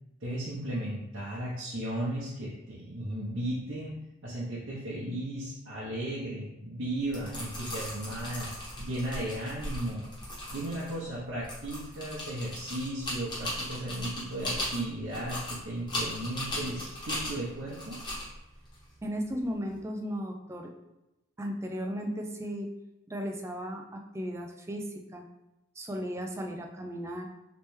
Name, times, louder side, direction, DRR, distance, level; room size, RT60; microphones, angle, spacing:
voice 1, 0.2-4.0 4.2-8.5 8.8-10.0 10.5-18.0, right 1 dB, 65° right, -8 dB, 0.7 m, -35 dB
sound 1, 7.0-19.7, left 1 dB, 20° left, 1.1 m, -38 dB
voice 2, 19.0-20.7 21.4-22.7 23.1-24.8 25.1-25.2 25.8-27.3, equal, 15° right, 2 dB, 0.3 m, -35 dB
3.3 x 3.0 x 3.1 m, 0.95 s
head